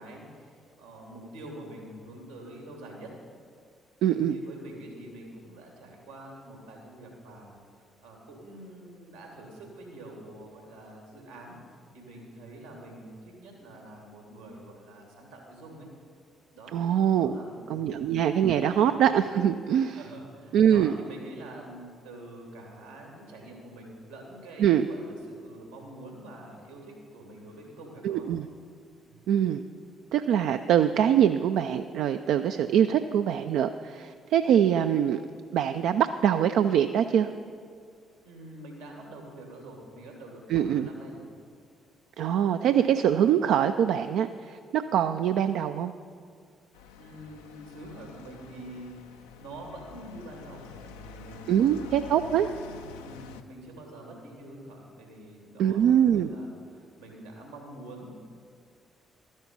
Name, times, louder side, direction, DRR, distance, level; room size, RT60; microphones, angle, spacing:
voice 1, 0.0-3.2 4.0-7.6 8.0-11.6 11.9-15.9 16.5-17.9 18.5-19.0 19.9-28.3 29.0-29.2 38.2-41.3 46.9-52.3 53.0-58.2, right 1 dB, 85° right, 0 dB, 2.7 m, -46 dB
voice 2, 4.0-4.4 16.7-17.4 17.7-20.0 20.5-20.9 24.6-24.9 28.0-28.5 29.3-29.6 30.1-35.2 35.5-37.3 40.5-40.9 42.2-45.9 51.5-52.5 55.6-56.3, right 9 dB, 65° right, 8 dB, 0.3 m, -23 dB
sound 1, 46.7-53.4, left 5 dB, 80° left, 0.5 m, -47 dB
12.5 x 10.5 x 5.4 m, 2.2 s
hypercardioid pair, 45°, 0 cm